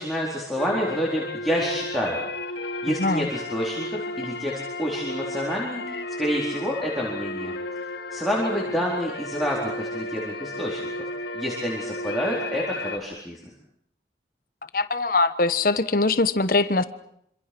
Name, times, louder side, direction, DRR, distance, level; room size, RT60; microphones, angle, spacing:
voice 1, 0.0-2.2 2.5-11.1 11.3-13.4, equal, ahead, -5 dB, 4.2 m, -28 dB
sound 1, 0.6-13.0, left 2 dB, 80° left, 2.9 m, -33 dB
voice 2, 14.7-16.8, left 3 dB, 50° left, 12 dB, 1.3 m, -22 dB
26.5 x 26.5 x 6.2 m, 0.72 s
head